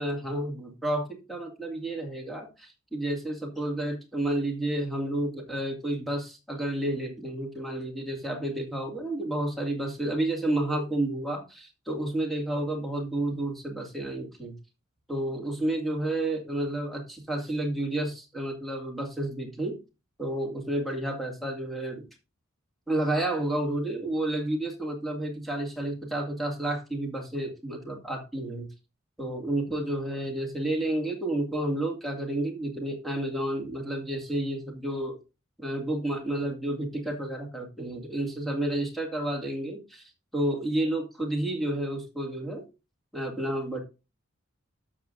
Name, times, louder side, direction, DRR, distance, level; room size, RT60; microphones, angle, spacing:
voice 1, 0.0-14.5 15.1-19.8 20.2-22.1 22.9-28.7 29.2-35.2 35.6-40.0 40.3-42.7 43.1-43.8, right 1 dB, ahead, 1 dB, 2.2 m, -30 dB
12.0 x 7.1 x 2.6 m, 0.29 s
head